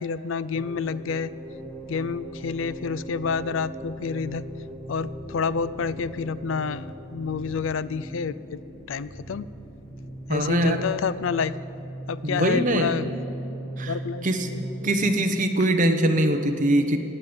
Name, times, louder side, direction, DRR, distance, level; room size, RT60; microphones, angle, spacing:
voice 1, 0.0-1.3 1.9-4.5 4.9-8.6 8.9-9.5 10.3-11.5 12.1-13.2 13.9-14.9, left 5 dB, 65° left, 17 dB, 0.4 m, -29 dB
sound 1, 0.5-15.1, right 1 dB, 15° left, 1.4 m, -39 dB
voice 2, 10.3-10.9 12.2-13.0 13.8-13.9 14.2-14.5 14.8-17.0, right 1 dB, 35° right, 5 dB, 1.0 m, -22 dB
19.0 x 7.9 x 8.8 m, 2.8 s
head